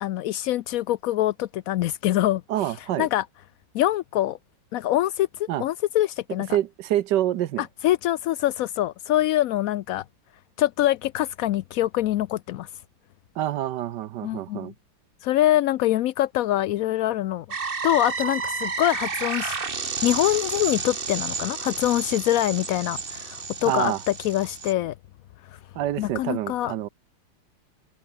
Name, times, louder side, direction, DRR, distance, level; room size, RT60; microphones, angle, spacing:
voice 1, 0.0-2.4 3.0-3.2 3.7-4.4 4.7-6.5 7.8-10.0 10.6-12.7 14.2-14.7 15.2-17.5 17.8-19.6 20.0-23.9 24.2-24.9 26.0-26.7, left 14 dB, 85° left, 0.7 m, -24 dB
voice 2, 2.5-3.1 5.5-5.6 6.5-7.6 13.4-14.7 23.6-24.0 25.7-26.9, right 12 dB, 70° right, 1.3 m, -26 dB
sound 1, 17.5-24.7, right 4 dB, 30° right, 1.6 m, -31 dB
omnidirectional pair, 2.0 m